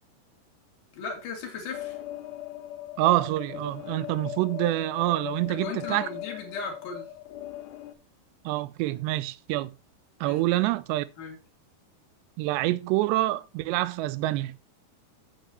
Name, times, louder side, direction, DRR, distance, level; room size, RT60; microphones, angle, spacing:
voice 1, 0.9-2.0 5.5-7.1 10.2-10.6 11.2-11.4, left 4 dB, 55° left, 3.3 m, -37 dB
sound 1, 1.7-7.9, left 13 dB, 85° left, 3.0 m, -39 dB
voice 2, 3.0-6.1 8.5-9.7 10.2-11.1 12.4-14.6, right 16 dB, 90° right, 2.8 m, -26 dB
7.9 x 7.5 x 4.3 m
omnidirectional pair, 4.8 m